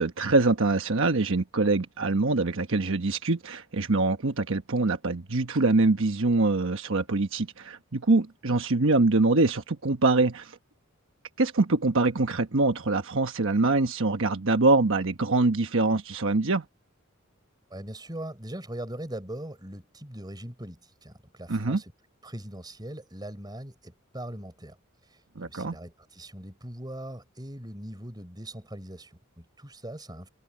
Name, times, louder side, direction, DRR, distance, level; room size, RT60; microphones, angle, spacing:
voice 1, 0.0-10.6 11.4-16.6 21.5-21.8 25.4-25.8, right 3 dB, 65° right, 1.2 m, -24 dB
voice 2, 17.7-21.9 22.2-24.8 25.0-30.3, right 1 dB, 20° right, 4.4 m, -40 dB
head